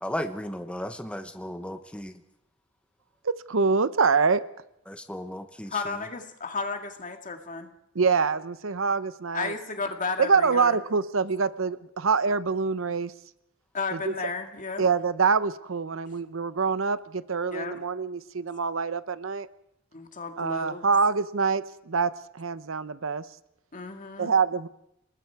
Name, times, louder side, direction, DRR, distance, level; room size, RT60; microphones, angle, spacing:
voice 1, 0.0-2.1 4.9-6.0, equal, 5° left, 8 dB, 1.0 m, -35 dB
voice 2, 3.2-4.4 7.9-9.5 10.2-13.1 14.0-14.1 14.8-19.5 20.4-23.2 24.2-24.7, right 5 dB, 75° right, 15 dB, 0.8 m, -25 dB
voice 3, 5.7-7.7 9.3-10.8 13.7-14.9 17.5-17.8 19.9-20.8 23.7-24.3, left 4 dB, 40° left, 5 dB, 2.1 m, -33 dB
29.0 x 20.0 x 4.7 m, 0.80 s
head